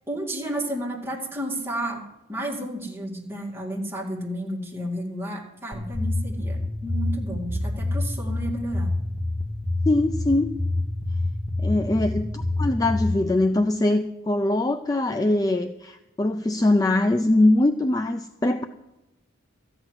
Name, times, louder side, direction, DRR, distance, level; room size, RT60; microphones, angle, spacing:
voice 1, 0.1-2.0 2.3-8.9, right 1 dB, 10° right, -3 dB, 2.3 m, -32 dB
sound 1, 5.7-13.1, left 2 dB, 35° left, 1.6 m, -27 dB
voice 2, 9.9-10.5 11.6-18.6, left 2 dB, 20° left, 6 dB, 0.4 m, -22 dB
13.5 x 6.1 x 9.6 m, 0.98 s
head